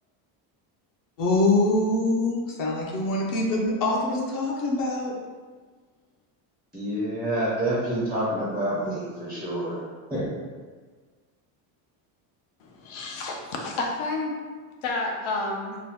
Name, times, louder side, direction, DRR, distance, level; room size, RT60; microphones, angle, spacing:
voice 1, 1.2-5.1, left 2 dB, 45° left, -2 dB, 0.6 m, -24 dB
voice 2, 6.7-9.8 10.1-10.3, right 1 dB, ahead, -8 dB, 0.4 m, -27 dB
voice 3, 12.6-14.4 14.8-15.8, left 2 dB, 80° left, 1 dB, 0.8 m, -30 dB
2.9 x 2.2 x 3.4 m, 1.5 s
cardioid pair, 160°, 47 cm